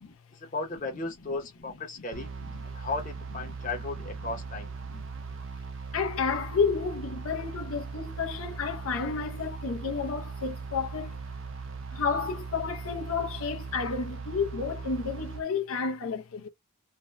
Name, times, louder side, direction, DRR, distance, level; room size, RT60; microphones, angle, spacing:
voice 1, 0.5-2.3 2.6-4.7, left 3 dB, 35° left, 0.8 m, -35 dB
sound 1, 2.1-15.4, right 4 dB, 65° right, 0.5 m, -39 dB
voice 2, 5.9-11.2 11.9-16.5, left 5 dB, 85° left, 0.6 m, -31 dB
2.6 x 2.1 x 3.2 m
head